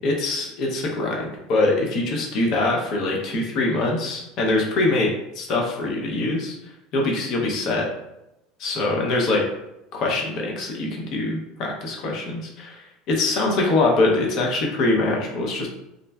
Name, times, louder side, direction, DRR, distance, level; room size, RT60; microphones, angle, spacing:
voice 1, 0.0-5.1 5.3-6.5 6.9-7.9 8.6-9.4 9.9-15.7, left 2 dB, 45° left, -1 dB, 0.6 m, -23 dB
3.7 x 2.1 x 2.2 m, 0.90 s
cardioid pair, 155°, 0 cm